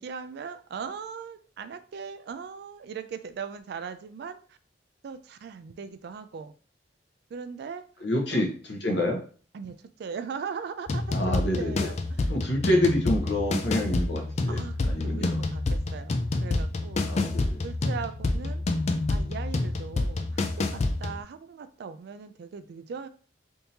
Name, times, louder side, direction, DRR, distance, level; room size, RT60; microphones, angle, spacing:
voice 1, 0.0-4.6 5.0-6.5 7.3-7.8 8.3-8.4 9.5-12.0 14.5-17.0 17.6-18.6 19.1-23.1, right 6 dB, 60° right, 11 dB, 0.3 m, -39 dB
voice 2, 8.0-9.2 11.1-11.9 12.3-14.6 14.8-15.4 17.1-17.6, left 1 dB, 65° left, 0 dB, 1.0 m, -27 dB
sound 1, 10.9-21.2, left 2 dB, 35° left, 0.4 m, -28 dB
3.5 x 2.8 x 2.8 m, 0.40 s
head